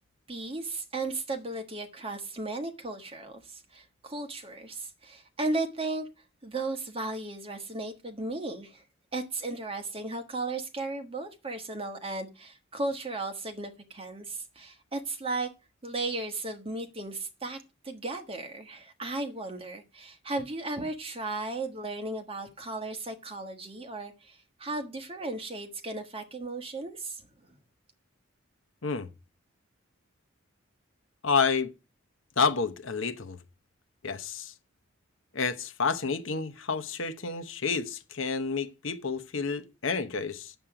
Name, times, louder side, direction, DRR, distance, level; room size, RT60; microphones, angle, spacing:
voice 1, 0.3-6.1 6.4-8.8 9.1-15.5 15.8-17.6 17.8-27.2, right 2 dB, 30° right, 1.4 m, -35 dB
voice 2, 31.2-31.7 32.4-33.4 34.0-34.5 35.3-40.5, left 5 dB, 75° left, 0.9 m, -29 dB
8.8 x 7.4 x 4.8 m
head